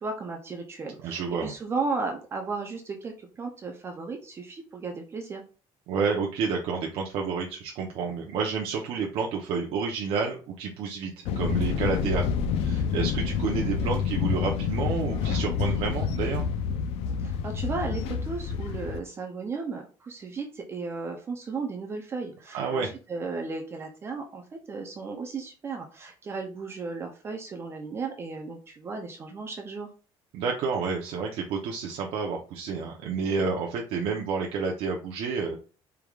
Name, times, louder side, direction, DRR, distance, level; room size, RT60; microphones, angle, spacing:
voice 1, 0.0-5.4 17.2-29.9, right 4 dB, 25° right, 3 dB, 0.5 m, -35 dB
voice 2, 1.0-1.5 5.9-12.2 12.6-16.4 22.5-22.9 30.3-35.6, right 5 dB, 65° right, 0 dB, 0.7 m, -30 dB
sound 1, 11.2-19.0, left 6 dB, 70° left, 0.5 m, -28 dB
4.7 x 3.4 x 2.3 m, 0.35 s
cardioid pair, 180°, 11 cm